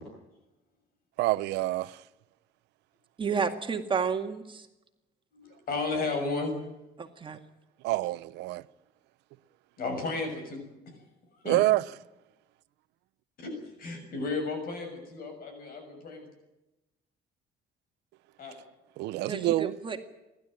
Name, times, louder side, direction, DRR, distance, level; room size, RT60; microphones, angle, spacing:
voice 1, 1.2-2.1 7.8-8.7 11.4-11.8 19.0-19.8, right 17 dB, 85° right, 0.8 m, -27 dB
voice 2, 3.2-4.7 7.0-7.4 19.3-20.1, right 6 dB, 30° right, 2.0 m, -31 dB
voice 3, 5.3-6.5 9.8-11.0 11.4-11.6 13.4-13.5 13.8-16.3 18.4-18.6, left 3 dB, 60° left, 6.6 m, -33 dB
28.5 x 12.5 x 9.0 m
cardioid pair, 110°, 17 cm